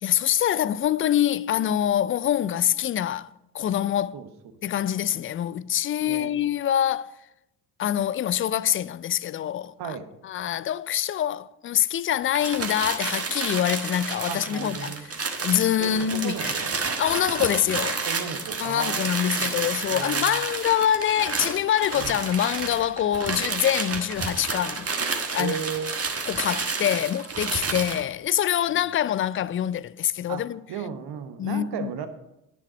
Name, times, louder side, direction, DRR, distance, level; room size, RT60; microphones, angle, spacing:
voice 1, 0.0-4.2 4.6-7.2 7.8-10.0 10.2-14.9 15.4-16.5 17.0-18.0 18.6-25.6 26.3-30.6 31.4-32.1, left 10 dB, 30° left, 0.3 m, -25 dB
voice 2, 4.7-5.1 6.0-6.3 9.8-10.1 14.3-15.1 15.8-16.7 18.0-20.4 21.9-22.2 25.4-25.9 27.7-27.8 28.7-28.8 30.3-32.1, right 7 dB, 60° right, 1.2 m, -35 dB
sound 1, 12.3-28.0, right 4 dB, 30° right, 1.5 m, -30 dB
9.9 x 7.1 x 5.0 m
hypercardioid pair, 50°, 45 cm